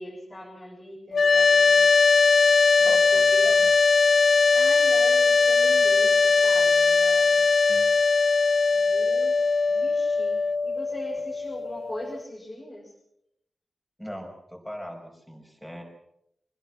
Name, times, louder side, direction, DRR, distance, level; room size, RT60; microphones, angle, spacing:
voice 1, 0.0-1.9 2.8-3.6 4.5-7.4 8.7-9.4 9.7-12.9, left 1 dB, 20° left, -5 dB, 7.1 m, -41 dB
sound 1, 1.1-12.2, left 4 dB, 60° left, 0.8 m, -20 dB
voice 2, 2.7-3.7 7.6-7.9 14.0-15.8, equal, 5° left, 3 dB, 5.8 m, -39 dB
25.5 x 20.5 x 5.8 m, 0.76 s
wide cardioid pair, 170°, 0 cm